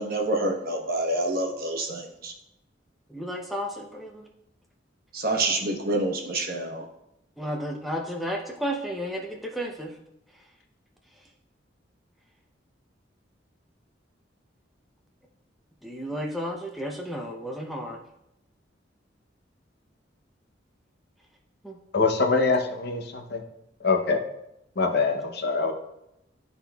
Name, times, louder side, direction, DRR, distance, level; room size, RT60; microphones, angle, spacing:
voice 1, 0.0-2.3 5.1-6.8, right 2 dB, 50° right, 1 dB, 1.0 m, -27 dB
voice 2, 3.1-4.2 7.4-9.9 15.8-18.0 21.6-21.8, equal, ahead, -1 dB, 0.5 m, -32 dB
voice 3, 21.9-23.4 23.8-24.2 24.8-25.7, left 4 dB, 55° left, 4 dB, 0.7 m, -24 dB
12.0 x 4.1 x 2.3 m, 0.85 s
head